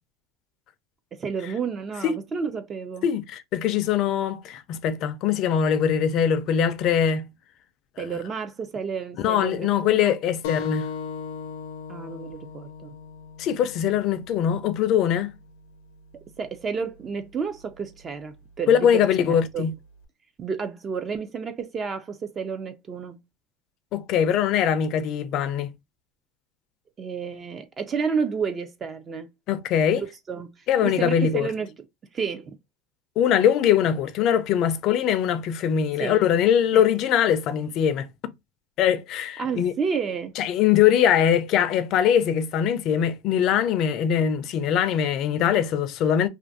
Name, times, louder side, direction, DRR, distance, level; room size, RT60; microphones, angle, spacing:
voice 1, 1.1-3.1 8.0-10.2 11.9-12.9 16.4-19.7 20.4-23.2 27.0-29.3 30.0-31.7 32.1-32.6 36.0-36.2 36.7-36.9 39.4-40.3, right 6 dB, 25° right, 0.3 m, -31 dB
voice 2, 3.0-7.3 9.2-10.9 13.4-15.3 18.7-19.7 23.9-25.7 29.5-30.0 30.7-31.5 33.2-38.1 38.8-39.7 40.4-46.3, left 9 dB, 45° left, 0.4 m, -22 dB
sound 1, 10.4-15.6, left 6 dB, 90° left, 0.6 m, -37 dB
2.5 x 2.4 x 2.5 m
supercardioid pair, 145°, 0 cm